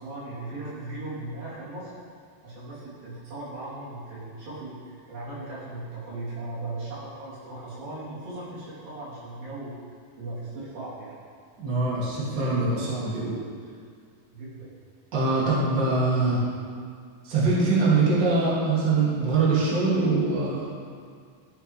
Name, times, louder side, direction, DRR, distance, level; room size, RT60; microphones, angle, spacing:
voice 1, 0.0-1.9 2.4-9.7 10.2-11.2 14.3-14.7, right 2 dB, 70° right, -10 dB, 4.4 m, -37 dB
voice 2, 11.6-13.4 15.1-16.4 17.2-20.7, right 3 dB, 35° right, -8 dB, 2.1 m, -23 dB
13.0 x 6.9 x 3.1 m, 2.1 s
omnidirectional pair, 4.2 m